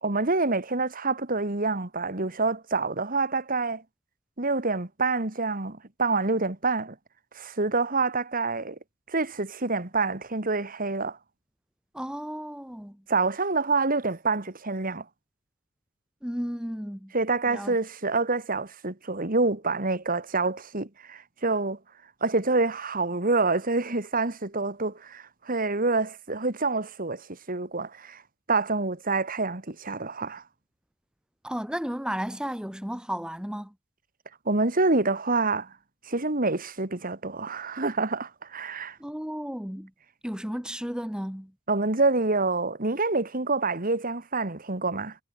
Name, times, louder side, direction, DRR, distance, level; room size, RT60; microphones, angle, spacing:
voice 1, 0.0-3.8 4.4-7.0 7.4-8.8 9.1-11.2 13.1-15.0 17.1-21.8 22.2-28.2 28.5-30.4 34.5-35.7 36.1-39.0 41.7-45.2, right 3 dB, 40° right, 2.0 m, -27 dB
voice 2, 11.9-13.0 16.2-17.1 17.4-17.8 31.4-33.7 39.0-39.9 40.2-41.5, equal, 5° right, 1.2 m, -33 dB
head